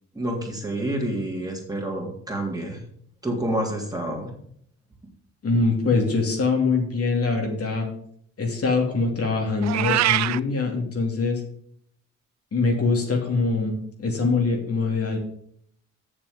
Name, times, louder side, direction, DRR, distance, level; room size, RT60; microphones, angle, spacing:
voice 1, 0.1-2.8 3.2-4.3, right 1 dB, 10° right, 0 dB, 3.2 m, -28 dB
voice 2, 5.4-7.9 8.4-11.4 12.5-15.2, left 3 dB, 50° left, 1 dB, 2.7 m, -23 dB
Meow, 9.6-10.4, right 14 dB, 65° right, 0.4 m, -22 dB
7.4 x 6.8 x 7.3 m, 0.67 s
cardioid pair, 75°, 30 cm